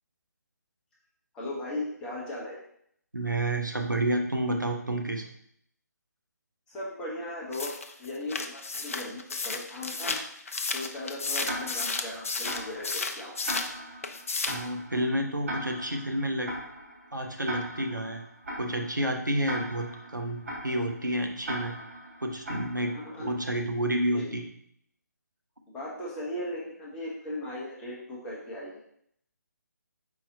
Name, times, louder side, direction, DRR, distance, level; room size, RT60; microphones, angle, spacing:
voice 1, 1.3-2.6 6.7-7.7 8.0-10.2 10.7-13.4 22.9-23.3 24.1-24.4 25.7-29.0, left 1 dB, 10° left, -6 dB, 0.8 m, -37 dB
voice 2, 3.1-5.3 14.5-16.5 17.1-18.2 18.6-21.7 22.2-22.9 23.2-24.4, right 1 dB, 85° right, 3 dB, 0.8 m, -30 dB
sound 1, 7.5-13.7 14.0-14.7, left 4 dB, 50° left, 0.4 m, -33 dB
Tick-tock, 11.4-23.3, right 1 dB, 50° right, 1.5 m, -40 dB
4.8 x 4.1 x 2.7 m, 0.68 s
figure-of-eight pair, 145°, 10 cm